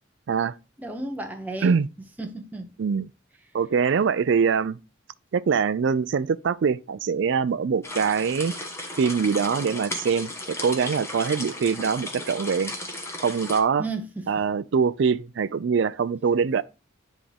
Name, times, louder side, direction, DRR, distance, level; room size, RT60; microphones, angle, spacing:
voice 1, 0.8-1.8 2.2-2.7 13.8-14.4, right 2 dB, 10° right, 0.9 m, -33 dB
voice 2, 3.5-4.8 5.3-8.5 9.0-10.3 10.6-12.7 13.2-13.8 14.3-16.6, right 6 dB, 60° right, 0.4 m, -23 dB
sound 1, 7.8-13.6, left 1 dB, 15° left, 1.2 m, -35 dB
9.9 x 3.6 x 3.4 m
head